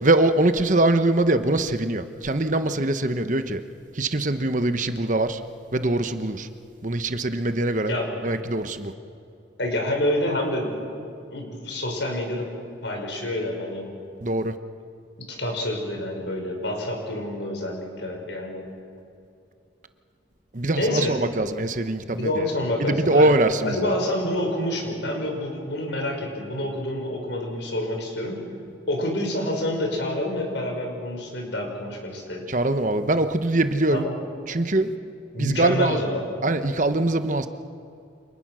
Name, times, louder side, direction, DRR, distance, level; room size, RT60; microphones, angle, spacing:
voice 1, 0.0-3.6 3.9-5.4 5.7-6.5 6.8-7.9 8.2-8.9 14.2-14.6 20.5-22.3 22.8-23.9 32.5-34.1 34.5-34.9 35.4-36.0 36.4-37.5, right 2 dB, 40° right, 9 dB, 1.0 m, -22 dB
voice 2, 7.8-8.4 9.6-10.7 11.3-12.5 12.8-13.9 15.2-18.7 20.8-21.2 22.1-23.3 23.6-28.4 28.9-32.5 33.9-34.1 35.3-36.3, left 1 dB, 70° left, 2 dB, 5.8 m, -28 dB
29.5 x 27.0 x 6.3 m, 2.6 s
head